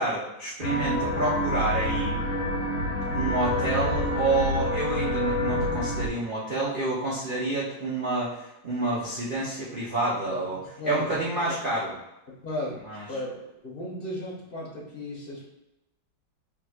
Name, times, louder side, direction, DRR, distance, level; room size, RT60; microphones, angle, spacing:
voice 1, 0.0-2.2 3.1-10.6 10.8-11.9 12.9-13.0, right 2 dB, 80° right, -7 dB, 0.4 m, -28 dB
sound 1, 0.6-6.1, left 1 dB, 75° left, 1.3 m, -27 dB
voice 2, 3.2-3.7 10.3-11.6 12.3-12.8 13.1-13.4 13.6-15.5, left 1 dB, 35° left, -5 dB, 1.0 m, -35 dB
4.5 x 3.8 x 2.4 m, 0.91 s
omnidirectional pair, 2.2 m